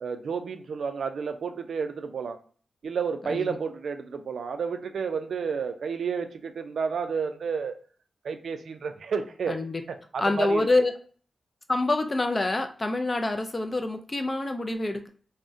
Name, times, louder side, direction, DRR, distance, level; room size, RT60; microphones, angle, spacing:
voice 1, 0.0-2.4 2.8-7.8 8.2-9.6 9.9-10.7, right 6 dB, 75° right, 7 dB, 0.3 m, -31 dB
voice 2, 3.2-3.6 9.5-9.8 10.2-10.9 11.7-15.1, left 2 dB, 25° left, 6 dB, 0.3 m, -26 dB
3.6 x 2.0 x 2.5 m, 0.44 s
wide cardioid pair, 140°, 0 cm